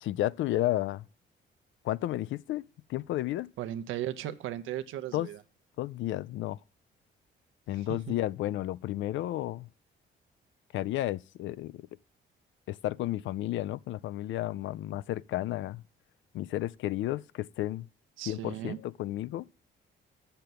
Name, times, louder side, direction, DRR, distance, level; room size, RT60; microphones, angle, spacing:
voice 1, 0.0-1.0 1.8-2.6 2.9-3.5 5.1-5.3 5.8-6.6 7.7-9.7 10.7-11.9 12.7-15.8 16.3-17.9 18.3-19.5, left 14 dB, 75° left, 0.4 m, -32 dB
voice 2, 3.6-5.4 7.7-8.2 18.2-18.8, right 12 dB, 90° right, 0.8 m, -36 dB
6.9 x 6.8 x 7.6 m
cardioid pair, 90°, 20 cm